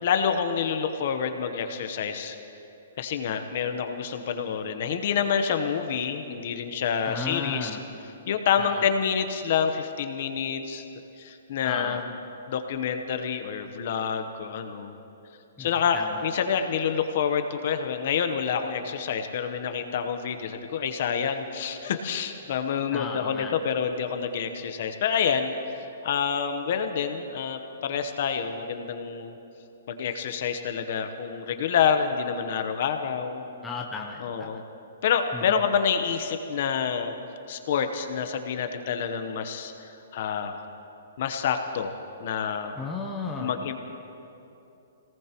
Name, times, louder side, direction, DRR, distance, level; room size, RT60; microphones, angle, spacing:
voice 1, 0.0-2.4 3.0-7.8 8.3-10.8 11.2-12.0 12.5-15.0 15.6-29.4 29.9-33.4 34.2-34.6 35.0-37.1 37.5-40.6 41.2-41.9 42.2-42.7 43.4-43.7, left 7 dB, 45° left, 7 dB, 0.9 m, -28 dB
voice 2, 7.0-7.8 8.6-8.9 11.6-12.0 15.6-15.7 15.9-16.2 22.9-23.5 33.6-34.6 35.3-35.6 42.8-43.7, left 4 dB, 5° left, -2 dB, 0.8 m, -35 dB
25.5 x 18.5 x 3.0 m, 2.8 s
hypercardioid pair, 170°, 0 cm